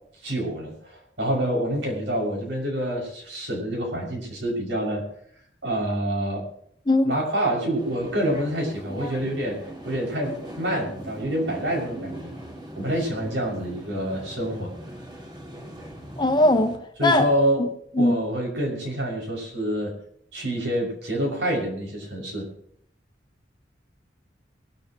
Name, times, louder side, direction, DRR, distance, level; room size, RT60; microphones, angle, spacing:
voice 1, 0.2-5.0 5.6-6.4 7.0-9.6 9.8-12.3 12.8-14.7 16.4-16.5 17.0-17.6 18.0-19.9 20.3-22.5, right 1 dB, 80° right, 6.5 m, -27 dB
sound 1, 7.8-16.8, right 1 dB, 25° right, 2.4 m, -40 dB
voice 2, 16.2-16.7 17.0-17.2 17.9-18.1, left 1 dB, 25° left, 1.2 m, -19 dB
23.5 x 13.0 x 3.1 m
head